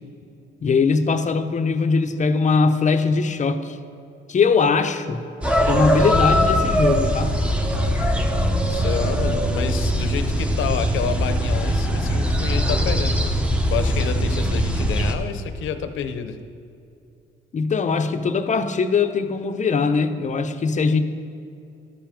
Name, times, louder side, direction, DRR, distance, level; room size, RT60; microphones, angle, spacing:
voice 1, 0.6-3.8 4.3-5.2 5.6-7.3 17.5-21.0, left 4 dB, 40° left, 9 dB, 0.6 m, -21 dB
sound 1, 5.4-15.1, equal, 5° right, 0.9 m, -21 dB
voice 2, 8.7-16.4, left 8 dB, 80° left, 10 dB, 0.7 m, -29 dB
13.0 x 5.7 x 5.0 m, 2.6 s
cardioid pair, 90°, 20 cm